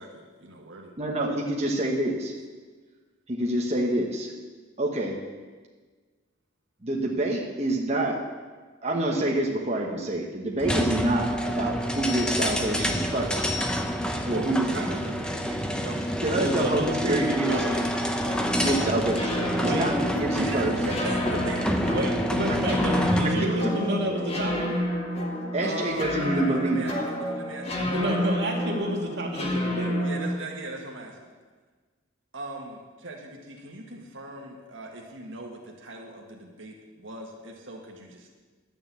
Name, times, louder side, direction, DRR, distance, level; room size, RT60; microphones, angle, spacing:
voice 1, 0.0-0.9 14.3-16.1 20.4-21.7 25.6-28.3 30.0-31.2 32.3-38.3, right 1 dB, 80° right, 0 dB, 1.6 m, -38 dB
voice 2, 1.0-2.3 3.3-4.3 4.8-5.2 6.8-8.2 8.8-13.5 14.3-14.8 16.2-17.7 18.5-20.7 23.2-24.2 25.5-26.9, right 1 dB, 35° right, -2 dB, 1.2 m, -27 dB
sound 1, 10.6-23.4, equal, 5° left, 0.8 m, -28 dB
voice 3, 16.3-17.8 19.6-19.9 21.9-24.7 27.8-29.9, equal, 60° right, -1 dB, 2.3 m, -29 dB
sound 2, 18.2-30.3, equal, 30° left, 1.6 m, -30 dB
11.5 x 6.9 x 8.2 m, 1.4 s
head